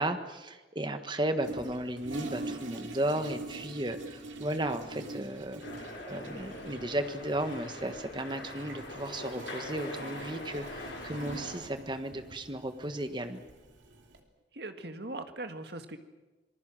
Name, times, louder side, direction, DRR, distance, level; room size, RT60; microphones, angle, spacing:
voice 1, 0.0-5.6 6.1-13.4, right 1 dB, 25° right, 8 dB, 1.5 m, -34 dB
Toilet flush, 1.4-14.2, right 2 dB, 90° right, 2.9 m, -45 dB
sound 1, 5.6-11.6, left 2 dB, 80° left, 6.6 m, -43 dB
voice 2, 14.5-16.0, right 2 dB, 60° right, 7 dB, 1.8 m, -40 dB
26.5 x 20.0 x 7.6 m, 1.2 s
head